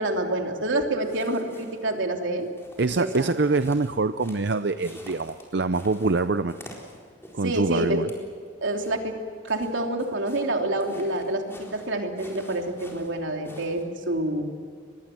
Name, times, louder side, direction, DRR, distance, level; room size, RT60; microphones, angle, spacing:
voice 1, 0.0-2.5 3.0-3.3 7.4-8.0 8.6-9.2 9.4-11.4 11.7-14.5, right 1 dB, 80° right, 3 dB, 3.1 m, -27 dB
sound 1, 1.0-2.0 2.4-7.6 7.9-8.3 8.8-13.8, left 1 dB, 15° left, 4.2 m, -49 dB
voice 2, 2.8-6.6 7.3-8.1, right 3 dB, 60° right, 11 dB, 0.6 m, -25 dB
24.5 x 21.5 x 7.7 m, 2.2 s
head